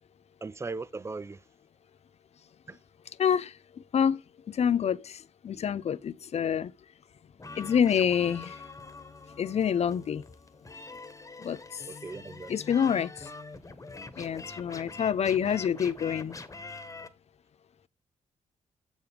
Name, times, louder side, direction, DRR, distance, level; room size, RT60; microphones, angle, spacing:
voice 1, 0.4-1.4 2.7-2.8 11.9-12.5, right 3 dB, 20° right, 0.5 m, -38 dB
voice 2, 3.2-4.2 4.5-6.7 7.6-8.6 9.4-10.2 11.4-11.8 12.5-13.3 14.2-16.4, left 8 dB, 55° left, 0.5 m, -27 dB
sound 1, 7.4-17.1, left 3 dB, 25° left, 1.4 m, -45 dB
7.5 x 7.1 x 3.5 m
cardioid pair, 60°, 13 cm